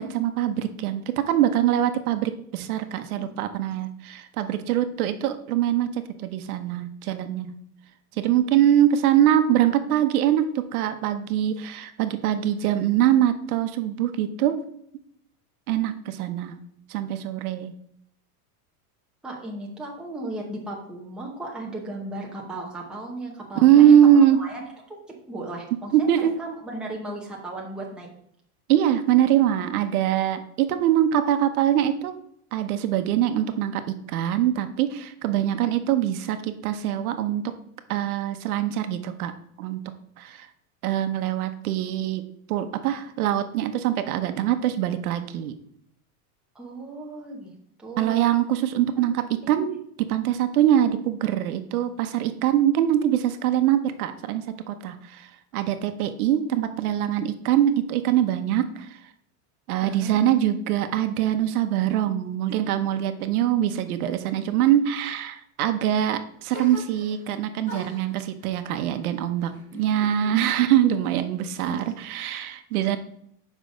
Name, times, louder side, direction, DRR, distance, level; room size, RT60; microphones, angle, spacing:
voice 1, 0.0-7.5 8.2-14.6 15.7-16.6 16.9-17.7 23.6-24.4 25.9-26.3 28.7-32.1 32.5-33.8 34.1-37.4 37.9-39.3 39.6-39.8 40.2-40.5 40.8-42.2 42.5-45.6 48.0-55.3 55.5-58.9 59.7-73.0, right 11 dB, 70° right, 9 dB, 1.0 m, -23 dB
voice 2, 19.2-25.0 25.3-28.1 35.4-35.6 46.5-47.5 47.8-48.2 49.5-49.6 59.8-60.1 69.7-69.9 71.7-72.0, right 2 dB, ahead, -3 dB, 0.8 m, -36 dB
sound 1, 66.5-67.3 67.6-70.4 70.7-71.5, left 1 dB, 25° left, 3.5 m, -44 dB
7.5 x 5.5 x 5.0 m, 0.70 s
supercardioid pair, 170°, 45 cm